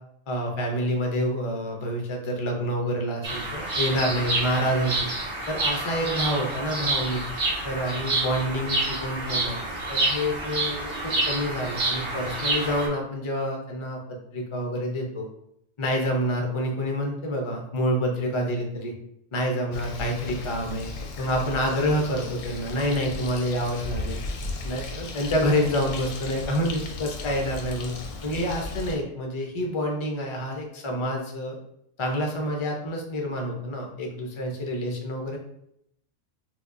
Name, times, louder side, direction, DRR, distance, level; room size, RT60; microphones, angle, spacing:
voice 1, 0.3-5.1 5.5-7.2 7.6-9.6 9.9-15.3 15.8-18.9 19.3-20.9 21.2-24.2 24.6-27.9 28.2-31.6 32.0-35.4, equal, 40° left, 1 dB, 0.4 m, -28 dB
Bird vocalization bird call bird song, 3.2-12.9, right 2 dB, 65° right, 1.1 m, -28 dB
Bird, 19.7-28.9, left 3 dB, 90° left, 1.0 m, -36 dB
4.5 x 2.1 x 2.4 m, 0.76 s
omnidirectional pair, 1.3 m